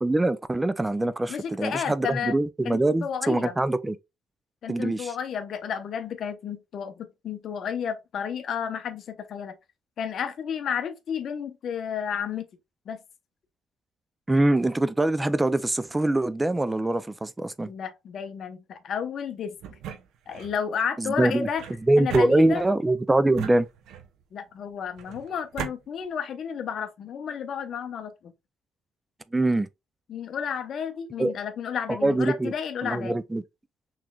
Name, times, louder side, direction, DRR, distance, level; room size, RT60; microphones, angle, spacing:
voice 1, 0.0-4.0 4.7-5.1 14.3-17.7 21.0-21.5 21.8-23.7 29.3-29.7 31.2-31.3 31.9-32.5 32.8-33.4, right 2 dB, 10° right, 0.4 m, -23 dB
voice 2, 1.3-2.4 2.6-3.5 4.6-9.5 10.0-12.5 12.9-13.0 17.6-19.5 20.3-21.6 22.0-22.6 24.3-28.3 30.1-33.2, left 7 dB, 55° left, 0.8 m, -32 dB
sound 1, 19.6-20.6 21.6-22.8 23.3-24.2 25.0-25.8, right 8 dB, 80° right, 0.7 m, -38 dB
5.9 x 3.2 x 2.3 m
cardioid pair, 115°, 0 cm